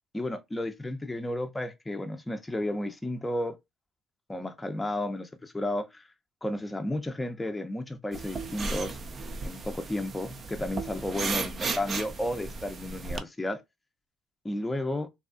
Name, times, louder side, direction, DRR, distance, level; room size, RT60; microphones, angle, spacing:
voice 1, 0.1-3.6 4.3-6.0 6.4-9.0 9.4-13.6 14.4-15.1, left 1 dB, 15° left, 0.5 m, -33 dB
sound 1, 8.1-13.2, right 4 dB, 45° right, 0.4 m, -35 dB
2.6 x 2.3 x 2.4 m
supercardioid pair, 80°, 0 cm